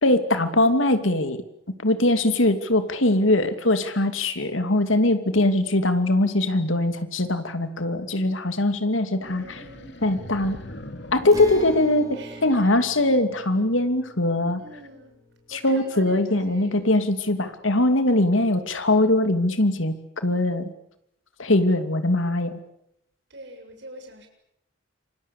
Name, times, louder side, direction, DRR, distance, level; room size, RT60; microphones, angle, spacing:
voice 1, 0.0-1.4 1.8-9.6 10.0-10.6 11.1-14.6 15.5-20.7 21.4-22.6, left 1 dB, 85° left, 9 dB, 2.8 m, -21 dB
sound 1, 9.2-12.7, left 1 dB, 60° left, 2.8 m, -41 dB
voice 2, 9.2-10.3 12.1-12.7 14.6-15.2 15.5-17.0 23.3-24.3, right 1 dB, 60° right, 5 dB, 7.3 m, -45 dB
Acoustic guitar, 11.3-16.8, right 1 dB, 20° right, 4.5 m, -44 dB
27.5 x 25.0 x 8.5 m, 0.79 s
head